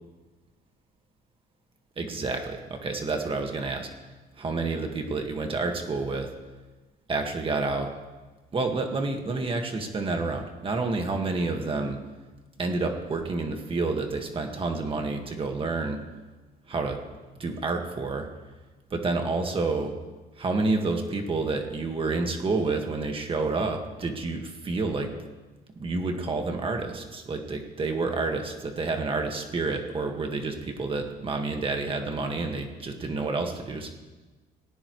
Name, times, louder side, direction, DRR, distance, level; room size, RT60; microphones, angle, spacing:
voice 1, 2.0-3.9 4.4-6.3 7.1-7.9 8.5-12.0 12.6-16.0 16.7-17.0 17.4-18.3 18.9-19.9 20.4-25.1 25.8-33.9, right 3 dB, 30° right, 3 dB, 1.8 m, -29 dB
18.0 x 17.5 x 3.2 m, 1.2 s
cardioid pair, 110°, 17 cm